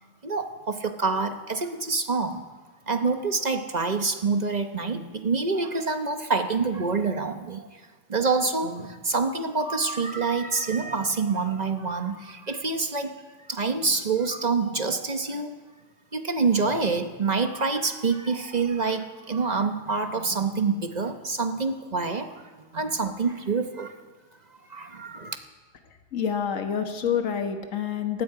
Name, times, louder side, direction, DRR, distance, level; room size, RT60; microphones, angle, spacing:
voice 1, 0.2-2.4 2.9-7.7 8.1-13.1 13.5-15.5 16.1-22.3 22.7-24.0 24.7-25.4, right 4 dB, 30° right, 6 dB, 0.9 m, -26 dB
voice 2, 26.1-28.2, left 7 dB, 55° left, 5 dB, 1.7 m, -27 dB
18.5 x 15.5 x 4.9 m, 1.3 s
omnidirectional pair, 1.7 m